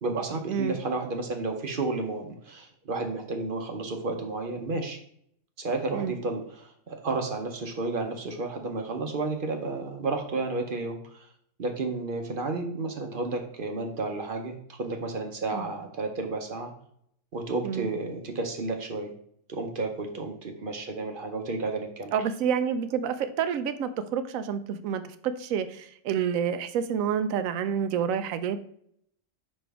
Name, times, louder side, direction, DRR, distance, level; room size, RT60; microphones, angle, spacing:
voice 1, 0.0-5.0 5.6-11.3 11.6-16.7 17.3-19.1 19.5-22.1, right 3 dB, 45° right, 4 dB, 0.9 m, -32 dB
voice 2, 22.1-28.6, right 7 dB, 90° right, 11 dB, 1.0 m, -28 dB
5.5 x 5.3 x 3.4 m, 0.67 s
omnidirectional pair, 1.4 m